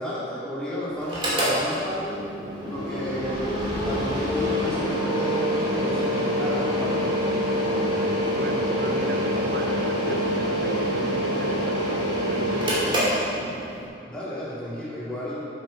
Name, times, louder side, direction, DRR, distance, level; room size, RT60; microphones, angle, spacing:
voice 1, 0.0-2.2 2.7-3.6 3.8-7.1 14.1-15.4, left 1 dB, 5° left, -10 dB, 3.0 m, -32 dB
Mechanical fan, 1.0-13.8, equal, 30° right, 2.8 m, -26 dB
voice 2, 7.7-12.0 12.3-13.3, right 2 dB, 60° right, 3 dB, 0.6 m, -36 dB
10.5 x 7.7 x 5.5 m, 2.6 s
head